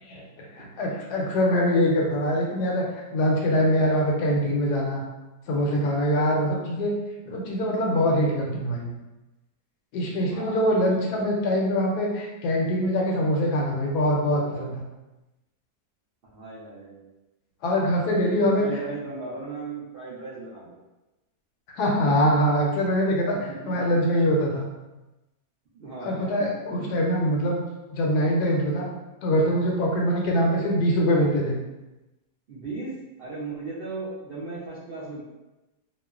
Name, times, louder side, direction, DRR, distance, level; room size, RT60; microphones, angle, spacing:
voice 1, 0.1-5.0 5.5-6.9 7.3-8.9 9.9-14.8 17.6-18.6 21.8-24.7 26.0-27.6 27.9-28.9 29.2-31.6, equal, 80° left, -1 dB, 1.1 m, -23 dB
voice 2, 10.3-11.2 16.3-17.1 18.2-20.8 23.5-23.9 25.7-26.4 30.2-30.5 32.5-35.2, right 3 dB, 70° right, -10 dB, 0.5 m, -37 dB
2.9 x 2.0 x 2.3 m, 1.0 s
omnidirectional pair, 1.7 m